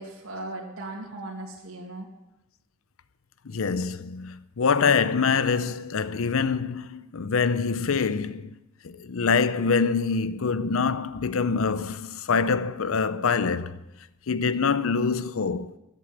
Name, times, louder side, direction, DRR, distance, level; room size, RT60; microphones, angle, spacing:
voice 1, 0.0-2.1, right 2 dB, 85° right, 2.4 m, -37 dB
voice 2, 3.5-8.5 8.8-13.8 14.3-15.7, left 5 dB, 80° left, 0.6 m, -25 dB
13.5 x 9.1 x 9.2 m
head